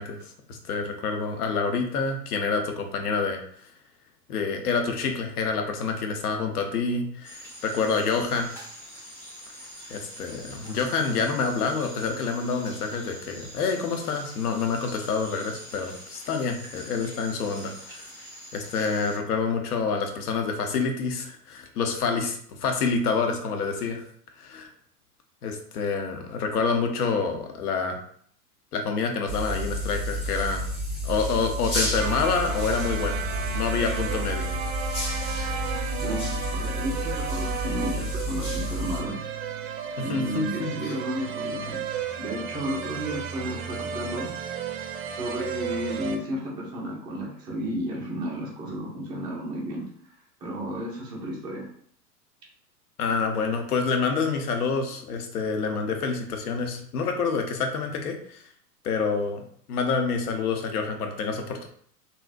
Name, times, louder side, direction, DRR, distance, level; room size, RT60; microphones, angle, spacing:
voice 1, 0.0-3.4 4.3-8.5 9.9-18.1 18.5-24.1 24.4-24.7 25.4-28.0 28.7-30.7 31.0-33.2 33.5-34.5 40.0-40.9 53.0-58.4 58.8-59.4 59.7-61.7, left 5 dB, 70° left, 4 dB, 0.8 m, -27 dB
sound 1, 7.2-19.2, equal, 5° left, 1.0 m, -44 dB
sound 2, 29.3-39.0, equal, 25° left, 1.4 m, -30 dB
sound 3, 32.0-46.2, right 7 dB, 60° right, 0.6 m, -34 dB
voice 2, 36.5-39.2 40.0-41.8 42.2-44.3 45.1-49.9 50.4-51.7, equal, 10° right, -4 dB, 0.4 m, -32 dB
3.8 x 2.1 x 2.5 m, 0.62 s
hypercardioid pair, 105°, 47 cm